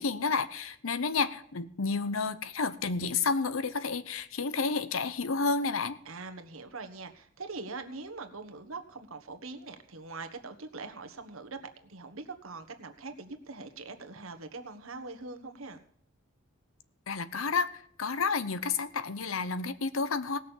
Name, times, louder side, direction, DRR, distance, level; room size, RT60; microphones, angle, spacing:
voice 1, 0.0-6.0 17.1-20.4, left 4 dB, 85° left, 14 dB, 0.8 m, -30 dB
voice 2, 6.0-15.8, right 3 dB, 85° right, 7 dB, 1.4 m, -43 dB
18.0 x 6.5 x 7.2 m, 0.65 s
head